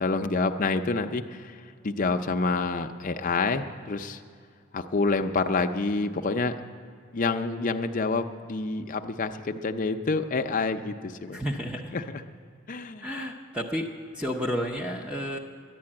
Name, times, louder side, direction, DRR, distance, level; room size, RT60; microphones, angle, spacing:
voice 1, 0.0-1.5 1.8-4.2 4.7-6.6 7.1-11.4 11.9-12.0 12.7-13.1, left 3 dB, 40° left, 6 dB, 0.5 m, -27 dB
voice 2, 11.3-12.0 13.0-15.4, equal, 5° right, -1 dB, 0.6 m, -31 dB
11.0 x 10.5 x 8.7 m, 2.2 s
head